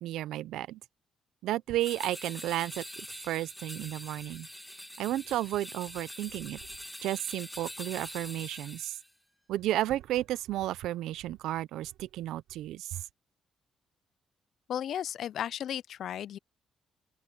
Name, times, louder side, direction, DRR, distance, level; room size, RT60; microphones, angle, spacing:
voice 1, 0.0-0.8 1.4-2.8 3.2-4.5 5.0-6.6 7.0-9.0 9.5-13.0, right 14 dB, 85° right, 0.5 m, -33 dB
sound 1, 1.8-9.1, equal, 5° left, 1.9 m, -44 dB
voice 2, 14.7-16.4, left 10 dB, 70° left, 0.3 m, -34 dB
open air
cardioid pair, 90°, 0 cm